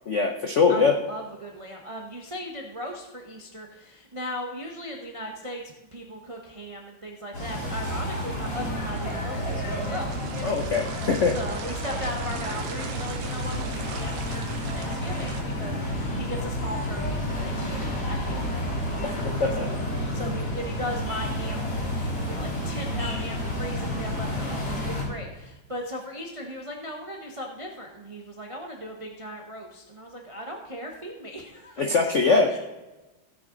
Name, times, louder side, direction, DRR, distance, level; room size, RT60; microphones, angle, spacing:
voice 1, 0.1-1.0 10.4-11.4 19.0-19.1 19.4-19.7 31.8-32.5, left 4 dB, 65° left, 2 dB, 0.7 m, -22 dB
voice 2, 0.7-10.1 11.3-19.5 20.0-32.2 32.5-32.6, equal, 45° right, 1 dB, 0.4 m, -38 dB
sound 1, 7.3-25.0, left 1 dB, 90° left, 4.1 m, -30 dB
sound 2, 7.7-15.4, right 7 dB, 85° right, 1.8 m, -42 dB
16.5 x 6.3 x 3.8 m, 1.1 s
omnidirectional pair, 2.4 m